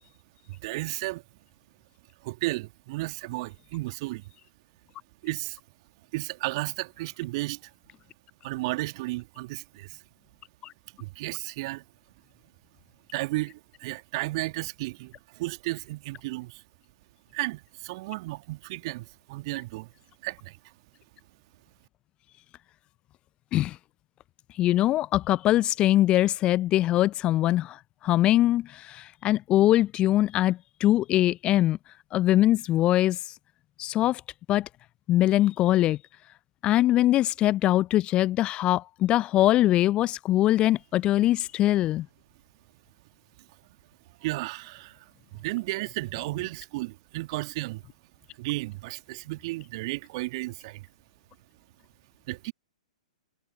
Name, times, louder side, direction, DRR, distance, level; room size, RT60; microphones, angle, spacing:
voice 1, 0.6-1.2 2.2-4.2 5.2-5.6 6.1-7.7 8.4-10.0 11.0-11.8 13.1-16.6 17.3-19.9 20.2-20.6 44.2-45.0 45.3-47.8 48.4-50.9 52.3-52.5, right 21 dB, 45° right, 2.0 m, -33 dB
voice 2, 24.6-31.8 32.1-33.3 33.8-34.2 34.5-34.7 35.1-36.0 36.6-42.1, left 14 dB, 25° left, 0.6 m, -22 dB
figure-of-eight pair, 110°, 4 cm